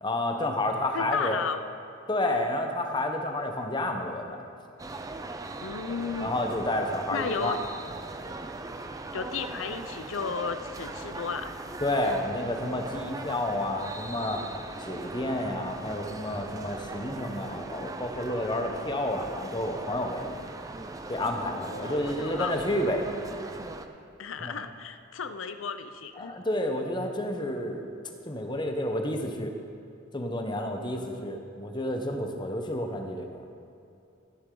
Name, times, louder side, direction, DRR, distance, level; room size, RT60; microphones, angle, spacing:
voice 1, 0.0-1.4 2.1-4.5 6.2-7.6 8.3-8.4 11.8-14.4 14.8-20.3 21.1-23.1 24.4-24.6 26.2-27.9 28.3-29.5 30.1-33.4, left 1 dB, 20° left, 4 dB, 0.9 m, -30 dB
voice 2, 0.9-1.6 5.6-6.3 7.1-7.6 9.1-11.5 21.7-22.5 24.2-26.4 30.9-31.4, left 5 dB, 75° left, 10 dB, 0.6 m, -34 dB
sound 1, 4.8-23.9, right 2 dB, 15° right, 0.5 m, -39 dB
14.0 x 9.7 x 3.9 m, 2.6 s
head